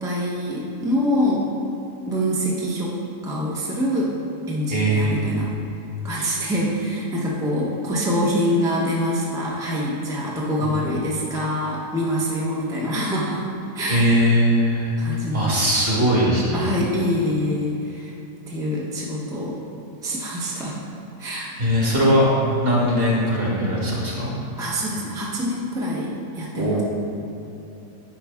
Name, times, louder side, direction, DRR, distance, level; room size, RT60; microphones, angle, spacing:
voice 1, 0.0-1.5 2.1-4.1 4.5-5.5 6.0-13.4 13.7-14.1 15.0-15.6 16.5-18.1 18.5-19.6 20.0-20.8 21.2-21.5 24.6-26.8, equal, 5° right, -5 dB, 0.6 m, -25 dB
voice 2, 4.7-5.4 10.6-10.7 13.9-14.9 15.3-16.7 21.6-22.3 22.6-24.3 26.6-26.8, equal, 40° right, -5 dB, 1.7 m, -20 dB
10.5 x 4.7 x 3.5 m, 2.8 s
omnidirectional pair, 1.7 m